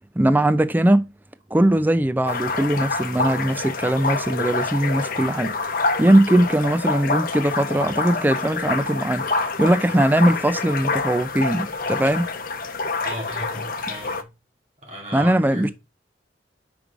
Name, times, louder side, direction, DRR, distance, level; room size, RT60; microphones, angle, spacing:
voice 1, 0.2-1.1 1.5-5.5 6.0-12.3 15.1-15.7, right 1 dB, 10° right, 0.4 m, -20 dB
sound 1, 2.2-14.2, left 3 dB, 50° left, 0.8 m, -27 dB
voice 2, 13.0-14.3 14.8-15.7, equal, 40° right, 2.8 m, -35 dB
5.2 x 4.7 x 5.0 m
head